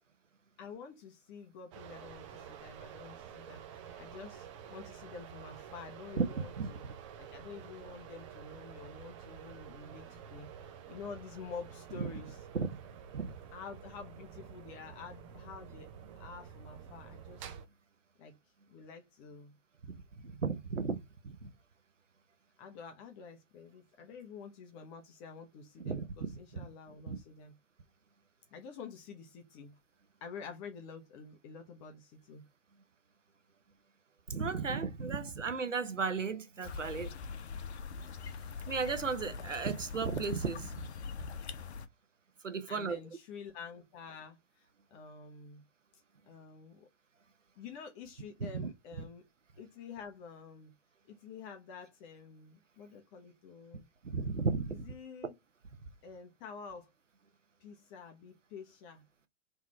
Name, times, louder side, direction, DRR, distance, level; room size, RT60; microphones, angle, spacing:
voice 1, 0.6-6.8 7.2-12.4 13.5-15.9 16.2-17.6 18.2-18.3 18.7-19.5 22.6-27.5 28.5-29.7 30.2-32.4 42.7-45.6 46.3-46.9 47.6-49.3 49.6-50.7 51.1-53.9 54.7-55.3 56.0-56.9 57.6-59.0, left 5 dB, 25° left, 0.8 m, -49 dB
sound 1, 1.7-17.7, right 8 dB, 25° right, 0.6 m, -50 dB
voice 2, 20.2-21.0 21.2-21.5 25.8-26.3 26.6-26.7 27.1-27.2 34.3-37.1 38.7-40.7 42.4-43.0 48.5-48.7 49.0-49.1 54.0-54.9, right 5 dB, 80° right, 0.9 m, -34 dB
sound 2, 36.6-41.9, left 5 dB, 60° left, 0.8 m, -43 dB
3.6 x 3.3 x 4.2 m
figure-of-eight pair, 115°, 37 cm